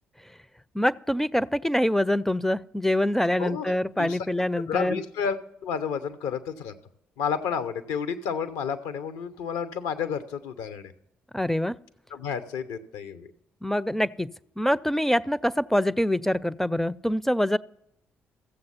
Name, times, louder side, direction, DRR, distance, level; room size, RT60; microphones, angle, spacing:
voice 1, 0.7-5.0 11.3-11.7 13.6-17.6, left 1 dB, 5° left, 20 dB, 0.4 m, -25 dB
voice 2, 3.4-4.2 4.7-6.7 7.2-10.9 12.1-13.3, left 7 dB, 75° left, 12 dB, 0.8 m, -31 dB
14.5 x 7.6 x 5.7 m, 0.79 s
hypercardioid pair, 40°, 6 cm